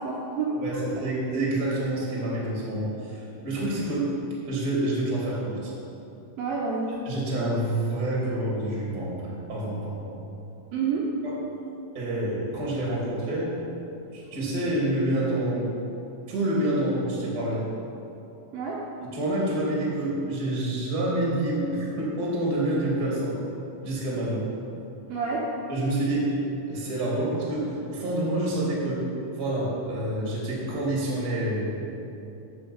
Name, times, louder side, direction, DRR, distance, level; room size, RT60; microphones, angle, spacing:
voice 1, 0.0-0.8 6.4-7.0 10.7-11.1 18.5-18.8 25.1-25.5, right 5 dB, 90° right, -5 dB, 2.0 m, -28 dB
voice 2, 0.6-4.1 4.5-5.7 7.0-10.1 11.2-11.3 11.9-13.5 14.1-15.7 16.3-17.6 19.1-23.4 23.8-24.5 25.7-26.3 26.7-29.1 29.3-31.7, right 1 dB, 35° right, -5 dB, 1.6 m, -27 dB
8.9 x 6.4 x 7.1 m, 2.8 s
omnidirectional pair, 5.7 m